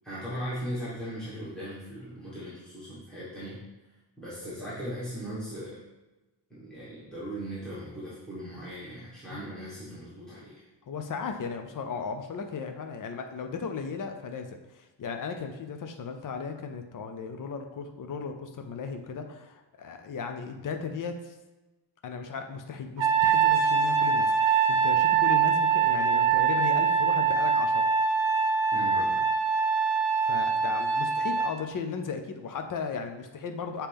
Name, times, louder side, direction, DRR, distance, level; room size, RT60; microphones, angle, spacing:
voice 1, 0.0-3.6 4.2-5.8 6.5-10.6 28.7-29.2, equal, ahead, -11 dB, 1.5 m, -38 dB
voice 2, 10.9-21.3 22.0-27.9 30.2-33.9, left 5 dB, 45° left, 6 dB, 0.6 m, -36 dB
Trumpet, 23.0-31.6, right 6 dB, 85° right, 0.7 m, -24 dB
7.0 x 4.4 x 3.5 m, 1.1 s
wide cardioid pair, 180°, 46 cm